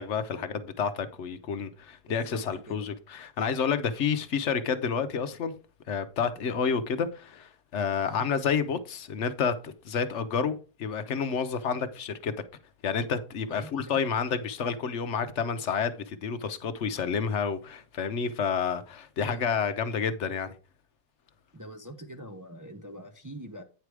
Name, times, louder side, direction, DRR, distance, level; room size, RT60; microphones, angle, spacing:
voice 1, 0.0-5.5 5.9-12.3 12.8-20.6, left 6 dB, 55° left, 0.9 m, -29 dB
voice 2, 2.1-3.0 8.0-8.2 13.5-14.0 19.2-19.4 21.5-23.6, right 1 dB, 20° right, 0.5 m, -44 dB
9.1 x 4.7 x 4.7 m
omnidirectional pair, 1.7 m